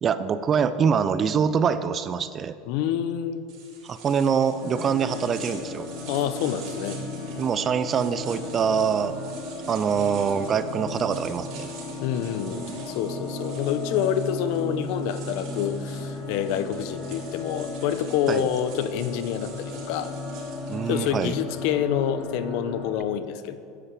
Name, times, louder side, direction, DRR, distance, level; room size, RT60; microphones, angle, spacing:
voice 1, 0.0-2.5 3.8-5.9 7.4-9.2 9.7-11.7 18.3-18.5 20.7-21.4, right 7 dB, 25° right, 13 dB, 0.6 m, -24 dB
voice 2, 2.7-3.5 6.1-7.0 12.0-20.1 20.9-23.6, left 9 dB, 65° left, 12 dB, 0.9 m, -27 dB
sound 1, 3.5-20.9, right 5 dB, 50° right, 3.8 m, -47 dB
sound 2, 4.6-22.9, left 2 dB, 35° left, 3.3 m, -35 dB
10.0 x 9.8 x 7.6 m, 2.5 s
supercardioid pair, 145°, 0 cm